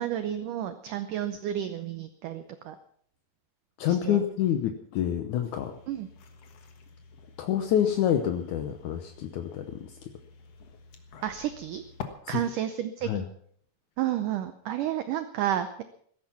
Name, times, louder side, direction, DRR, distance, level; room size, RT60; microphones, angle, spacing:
voice 1, 0.0-2.8 3.9-4.2 5.9-6.1 11.2-11.8 12.3-13.3 14.0-15.8, right 11 dB, 85° right, 10 dB, 1.8 m, -31 dB
voice 2, 3.8-5.7 7.4-9.9 12.2-12.4 13.0-13.3, left 10 dB, 80° left, 7 dB, 1.7 m, -27 dB
sound 1, 5.5-12.0, left 7 dB, 60° left, 1.8 m, -48 dB
16.5 x 13.5 x 5.9 m, 0.62 s
omnidirectional pair, 4.8 m